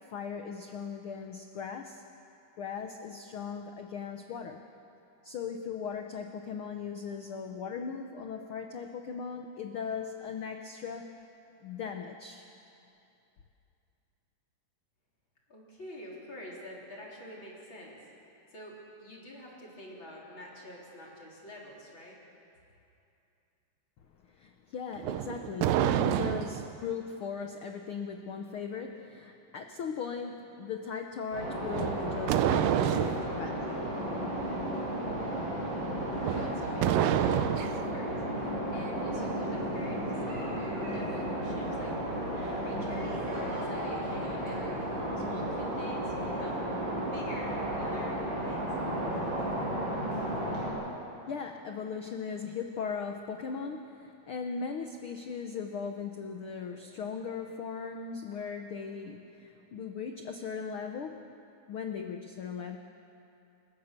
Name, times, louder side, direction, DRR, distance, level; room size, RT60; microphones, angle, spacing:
voice 1, 0.1-2.0 2.6-4.6 5.2-11.2 11.6-12.5 24.2-34.0 51.3-61.3 61.7-62.8, left 6 dB, 90° left, 4 dB, 1.1 m, -38 dB
voice 2, 15.5-18.0 18.5-22.2 36.3-38.2 38.7-40.0 40.3-41.9 42.4-46.7 47.1-49.1, equal, 35° left, -4 dB, 4.2 m, -48 dB
sound 1, 25.0-26.8 31.7-33.3 36.2-37.9, right 11 dB, 85° right, 2.4 m, -28 dB
sound 2, 31.3-50.7, right 1 dB, 35° right, 7.1 m, -33 dB
29.5 x 16.0 x 6.7 m, 2.7 s
omnidirectional pair, 3.8 m